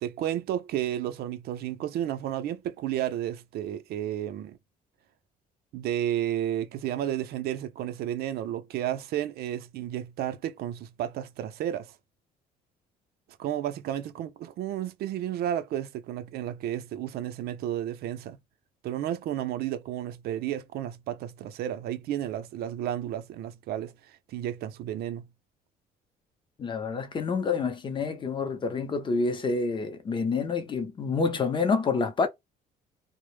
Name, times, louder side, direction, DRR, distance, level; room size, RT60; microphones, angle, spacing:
voice 1, 0.0-4.6 5.7-11.9 13.4-18.4 18.8-25.2, right 11 dB, 70° right, 0.5 m, -32 dB
voice 2, 26.6-32.3, left 4 dB, 30° left, 0.6 m, -28 dB
2.0 x 2.0 x 3.0 m
cardioid pair, 110°, 17 cm